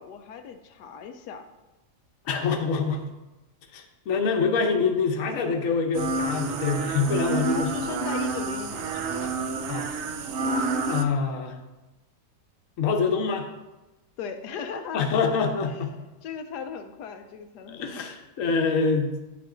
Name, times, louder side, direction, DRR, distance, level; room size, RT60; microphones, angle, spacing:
voice 1, 0.0-1.4 7.3-9.4 14.2-15.4 15.7-15.8 16.2-18.1, left 6 dB, 85° left, 6 dB, 1.2 m, -38 dB
voice 2, 2.2-3.1 3.7-7.7 9.7-9.9 10.9-11.6 12.8-13.5 14.9-15.9 17.7-19.1, left 5 dB, 60° left, 5 dB, 1.2 m, -25 dB
sound 1, 5.9-11.0, right 3 dB, 65° right, 0.7 m, -29 dB
9.1 x 6.0 x 3.7 m, 1.1 s
omnidirectional pair, 1.7 m